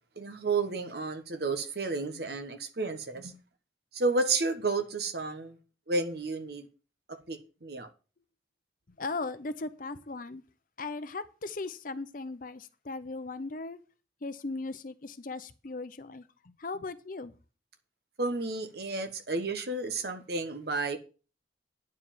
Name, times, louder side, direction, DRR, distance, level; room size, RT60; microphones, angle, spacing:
voice 1, 0.2-3.3 3.9-5.6 5.9-6.7 7.1-7.9 18.2-21.0, right 3 dB, 55° right, 1.2 m, -31 dB
voice 2, 9.0-10.4 10.8-13.8 14.2-17.3, left 3 dB, 45° left, 0.7 m, -38 dB
9.6 x 4.8 x 7.2 m
head